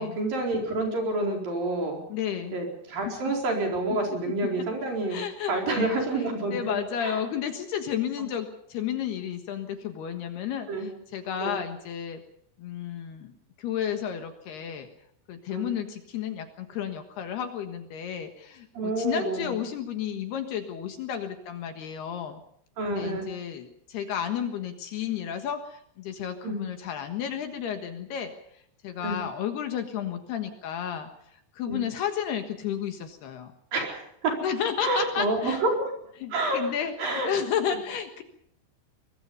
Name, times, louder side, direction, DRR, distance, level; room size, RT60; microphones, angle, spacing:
voice 1, 0.0-2.0 2.5-5.2 5.5-7.2 8.2-8.3 10.7-10.9 11.4-11.6 15.5-15.7 18.8-19.5 22.8-23.3 26.4-26.6 29.0-29.2 31.7-31.8 33.7-34.3 34.8-35.8 36.3-36.7 37.0-37.3, right 2 dB, 45° right, 1 dB, 5.8 m, -28 dB
voice 2, 2.1-2.6 3.1-3.2 3.9-4.0 4.4-4.5 5.1-12.2 12.6-13.3 13.6-14.9 15.3-22.4 22.8-28.3 28.8-31.1 31.6-33.5 34.4-35.6 36.2-36.9 37.2-38.2, left 9 dB, 65° left, 6 dB, 3.1 m, -32 dB
23.5 x 22.0 x 5.5 m, 0.68 s
omnidirectional pair, 5.7 m